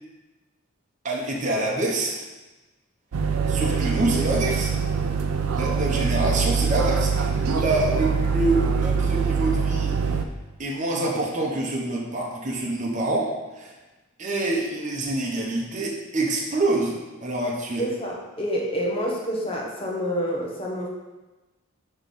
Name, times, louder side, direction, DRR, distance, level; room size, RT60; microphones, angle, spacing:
voice 1, 1.0-2.2 3.5-4.8 5.5-9.9 10.6-13.7 14.2-17.9, right 2 dB, 35° right, -2 dB, 0.9 m, -26 dB
sound 1, 3.1-10.2, right 5 dB, 80° right, 0.5 m, -24 dB
voice 2, 17.8-20.9, equal, 25° left, -2 dB, 1.0 m, -28 dB
5.9 x 3.2 x 5.3 m, 1.1 s
head